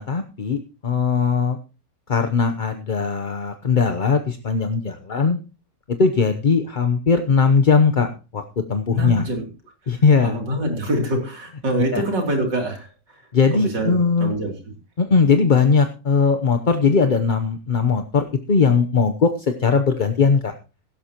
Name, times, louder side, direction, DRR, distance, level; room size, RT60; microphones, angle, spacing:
voice 1, 0.0-1.6 2.1-5.4 6.0-8.1 8.3-8.4 8.7-9.2 9.9-10.4 11.9-12.0 13.3-14.3 15.0-20.5, left 5 dB, 40° left, 7 dB, 0.8 m, -19 dB
voice 2, 8.9-9.5 9.8-13.2 13.5-14.7, right 1 dB, 85° right, 2 dB, 3.8 m, -25 dB
16.5 x 12.0 x 3.0 m, 0.32 s
omnidirectional pair, 1.8 m